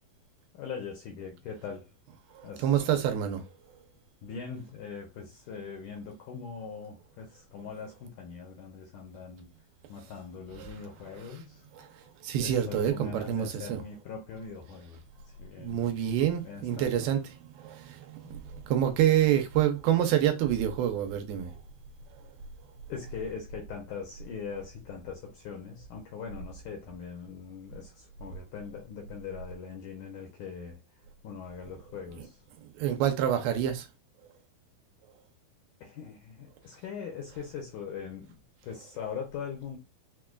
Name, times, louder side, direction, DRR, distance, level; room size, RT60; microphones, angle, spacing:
voice 1, 0.5-1.9 2.4-2.7 4.2-9.5 9.9-11.6 12.4-15.0 15.4-15.9 16.4-17.1 18.2-18.3 22.9-30.8 31.2-32.4 35.8-38.4 38.6-39.8, left 6 dB, 75° left, 1.9 m, -41 dB
voice 2, 2.4-3.4 10.6-10.7 11.8-11.9 12.2-13.8 15.6-21.5 32.6-33.9, right 10 dB, 85° right, 2.5 m, -27 dB
6.1 x 2.2 x 2.3 m
omnidirectional pair, 4.4 m